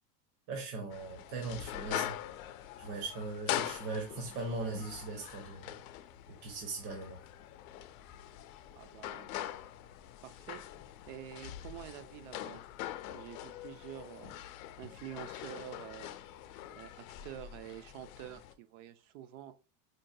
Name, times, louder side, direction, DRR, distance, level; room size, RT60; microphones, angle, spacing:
voice 1, 0.5-2.2 2.8-5.7 6.4-7.2, right 3 dB, 75° right, 2 dB, 1.2 m, -39 dB
sound 1, 0.9-18.5, left 13 dB, 65° left, 0.5 m, -43 dB
voice 2, 8.8-9.3 10.2-10.6 11.1-12.6 13.0-14.4 14.8-16.2 16.7-19.5, right 11 dB, 55° right, 12 dB, 0.6 m, -48 dB
5.1 x 2.2 x 2.6 m, 0.32 s
supercardioid pair, 165°, 46 cm